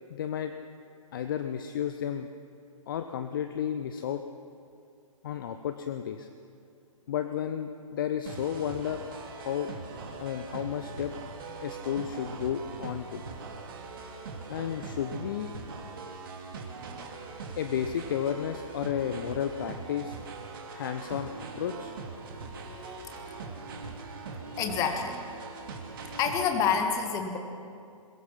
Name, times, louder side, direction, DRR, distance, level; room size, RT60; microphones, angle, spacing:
voice 1, 0.1-0.5 1.1-2.3 2.9-4.2 5.2-6.3 7.1-9.0 9.3-9.7 10.2-11.1 11.6-13.2 14.5-15.5 17.6-20.2 20.7-21.3 21.6-21.9, left 9 dB, 35° left, 8 dB, 0.8 m, -32 dB
sound 1, 8.3-26.5, right 4 dB, 40° right, 2.4 m, -41 dB
voice 2, 22.6-23.5 24.5-25.2 26.2-27.4, left 6 dB, 20° left, 5 dB, 1.7 m, -29 dB
21.5 x 21.5 x 5.9 m, 2.5 s
figure-of-eight pair, 125°, 18 cm